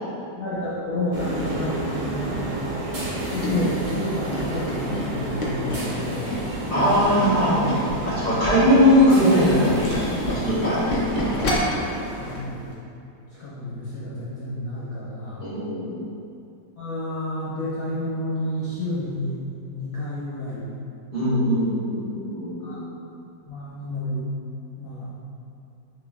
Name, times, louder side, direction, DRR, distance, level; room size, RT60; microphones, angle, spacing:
voice 1, 0.4-2.3 3.3-6.3 6.8-7.2 12.2-12.7 13.4-15.5 16.8-19.4 19.7-20.6 22.6-22.8 23.5-24.3 24.8-25.2, left 1 dB, 55° left, -10 dB, 1.2 m, -30 dB
sound 1, 1.1-12.4, right 1 dB, 50° right, 1.0 m, -31 dB
Tools, 3.0-7.9 8.3-11.8 12.2-12.4 12.7-12.8, left 1 dB, 75° left, 0.5 m, -28 dB
voice 2, 6.7-10.0 10.3-10.8 11.1-11.3 15.4-16.0 21.1-22.8, equal, 35° right, -11 dB, 1.4 m, -20 dB
6.6 x 3.0 x 2.3 m, 2.6 s
omnidirectional pair, 2.0 m